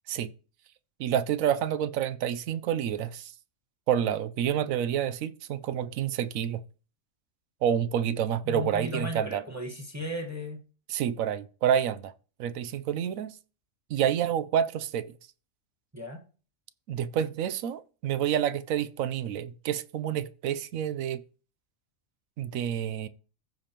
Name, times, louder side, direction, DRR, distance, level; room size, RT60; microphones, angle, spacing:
voice 1, 1.0-3.3 3.9-6.6 7.6-9.4 10.9-12.1 12.4-13.3 13.9-15.0 16.9-21.2 22.4-23.1, right 9 dB, 75° right, 1.0 m, -28 dB
voice 2, 8.4-10.6 15.9-16.2, equal, 10° right, 1.3 m, -35 dB
15.0 x 5.1 x 2.9 m
omnidirectional pair, 1.5 m